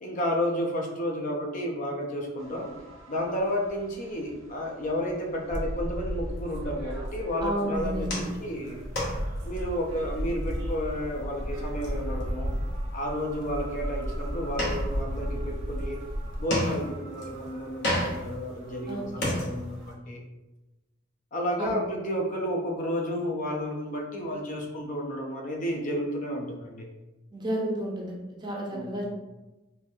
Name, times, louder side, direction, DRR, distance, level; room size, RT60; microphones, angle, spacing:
voice 1, 0.0-2.7 3.1-8.8 9.4-12.5 12.9-16.0 16.4-20.2 21.3-26.9 28.7-29.0, equal, 40° left, 0 dB, 0.5 m, -31 dB
sound 1, 2.4-19.9, right 2 dB, 90° right, 1.0 m, -51 dB
sound 2, 5.5-8.4 8.7-16.4, equal, 65° right, 0.6 m, -33 dB
voice 2, 7.4-8.3 18.9-19.0 21.6-21.8 27.3-29.0, right 1 dB, 20° right, -2 dB, 0.6 m, -31 dB
sound 3, 7.8-19.9, left 1 dB, 60° left, 0.9 m, -35 dB
3.7 x 2.6 x 2.6 m, 1.1 s
head